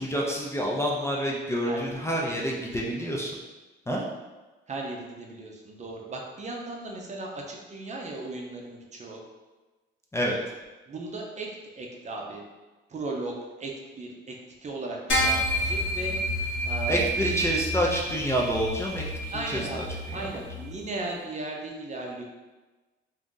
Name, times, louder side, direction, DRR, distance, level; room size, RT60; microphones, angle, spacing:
voice 1, 0.0-3.3 3.9-4.0 10.1-10.4 16.9-20.2, equal, 15° left, -3 dB, 0.5 m, -28 dB
voice 2, 1.5-2.6 4.7-9.2 10.9-12.4 12.9-14.4 14.6-16.2 16.6-17.5 19.3-22.2, right 2 dB, 35° right, -1 dB, 0.6 m, -36 dB
sound 1, 15.1-20.7, equal, 75° left, 1.2 m, -29 dB
2.7 x 2.4 x 3.7 m, 1.2 s
cardioid pair, 90°, 20 cm